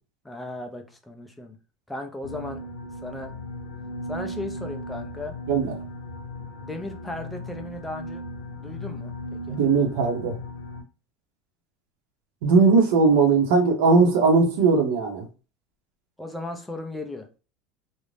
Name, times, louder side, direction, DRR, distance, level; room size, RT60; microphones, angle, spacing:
voice 1, 0.2-1.6 1.9-2.6 3.0-3.3 4.1-5.4 6.6-8.2 8.6-9.6 16.2-17.3, left 2 dB, 5° left, 0.4 m, -36 dB
sound 1, 2.2-10.8, left 1 dB, 80° left, 0.5 m, -37 dB
voice 2, 9.5-10.3 12.4-15.2, right 4 dB, 85° right, 0.7 m, -19 dB
2.5 x 2.1 x 3.2 m
cardioid pair, 170°, 0 cm